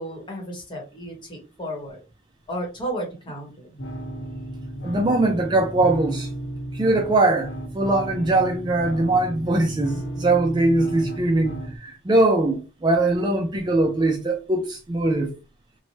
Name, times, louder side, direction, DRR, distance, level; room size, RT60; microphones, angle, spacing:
voice 1, 0.0-2.0 2.5-3.8, right 1 dB, 25° left, 1.0 m, -33 dB
sound 1, 3.8-11.8, right 1 dB, 65° left, 1.0 m, -34 dB
voice 2, 4.8-6.3 6.7-15.3, right 2 dB, 25° right, 0.3 m, -21 dB
3.0 x 2.1 x 2.7 m
head